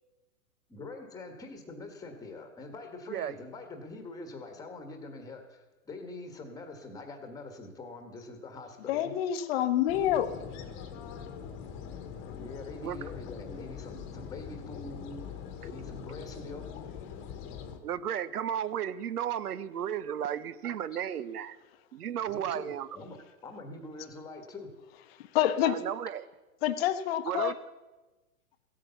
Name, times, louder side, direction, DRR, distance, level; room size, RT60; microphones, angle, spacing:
voice 1, 0.7-9.1 12.3-15.3 15.6-16.8 22.2-24.7, left 2 dB, 10° left, 6 dB, 1.4 m, -44 dB
voice 2, 8.9-10.3 25.1-25.8 26.6-27.6, left 11 dB, 40° left, 10 dB, 0.9 m, -27 dB
sound 1, 9.9-17.8, left 7 dB, 25° left, 1.2 m, -43 dB
voice 3, 17.8-21.6 21.9-23.0 25.6-26.2 27.2-27.5, right 9 dB, 80° right, 17 dB, 0.9 m, -34 dB
15.5 x 8.6 x 6.9 m, 1.1 s
hypercardioid pair, 140°, 45 cm